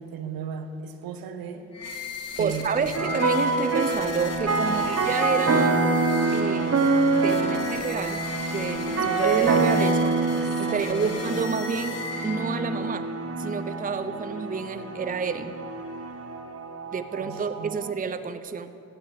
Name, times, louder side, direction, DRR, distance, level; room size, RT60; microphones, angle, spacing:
voice 1, 0.0-1.7 2.4-2.9 4.6-4.9 10.3-11.4 17.2-17.8, right 6 dB, 65° right, 0.9 m, -36 dB
sound 1, 1.7-12.8, left 4 dB, 40° left, 1.4 m, -37 dB
voice 2, 2.4-5.8 6.3-8.2 8.5-10.2 10.6-12.0 12.2-13.1 13.4-15.5 16.9-18.8, right 5 dB, 20° right, 0.6 m, -29 dB
sound 2, 2.9-17.9, right 3 dB, 40° right, 1.4 m, -26 dB
15.5 x 7.3 x 4.9 m
hypercardioid pair, 40°, 38 cm